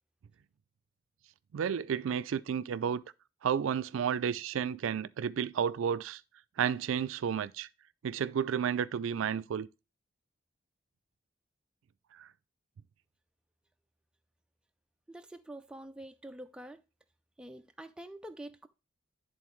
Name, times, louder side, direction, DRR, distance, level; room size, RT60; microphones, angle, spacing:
voice 1, 1.5-3.0 3.4-6.2 6.6-7.7 8.0-9.7 12.2-12.3, right 8 dB, 80° right, 0.3 m, -32 dB
voice 2, 15.1-16.8 17.4-18.7, right 1 dB, 5° right, 0.3 m, -46 dB
10.5 x 3.8 x 3.1 m
head